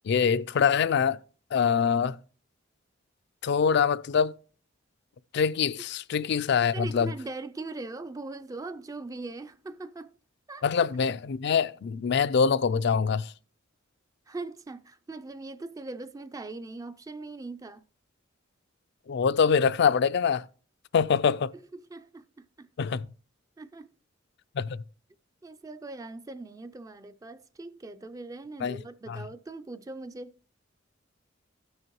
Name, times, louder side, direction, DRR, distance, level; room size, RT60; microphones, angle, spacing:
voice 1, 0.1-1.2 1.5-2.2 3.4-4.3 5.3-7.1 10.6-13.3 19.1-20.4 20.9-21.5 22.8-23.1 24.6-24.7 28.6-28.8 29.1-29.2, left 6 dB, 55° left, 0.4 m, -24 dB
voice 2, 6.7-10.1 10.5-10.6 14.3-17.8 21.7-22.7 23.6-23.9 25.4-30.4, right 2 dB, 15° right, 0.3 m, -40 dB
16.0 x 6.4 x 3.0 m
head